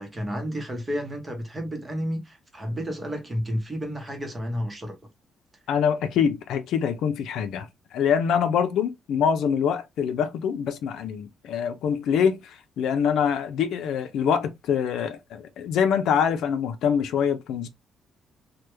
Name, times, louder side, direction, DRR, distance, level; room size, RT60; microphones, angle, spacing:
voice 1, 0.0-5.0, equal, 15° right, 0.9 m, -31 dB
voice 2, 5.7-7.7 7.9-17.7, left 7 dB, 75° left, 0.5 m, -24 dB
3.3 x 2.2 x 3.0 m
cardioid pair, 170°, 0 cm